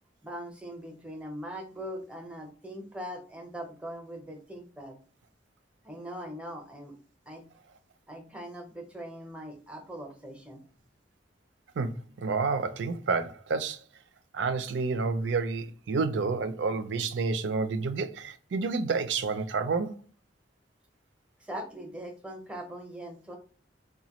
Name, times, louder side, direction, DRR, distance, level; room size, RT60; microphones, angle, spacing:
voice 1, 0.2-5.0 5.8-7.0 7.3-7.4 8.1-10.6 21.5-23.4, equal, 5° right, 0.7 m, -41 dB
voice 2, 12.2-13.8 14.3-20.0, right 4 dB, 70° right, 0.4 m, -29 dB
4.0 x 2.2 x 2.9 m
head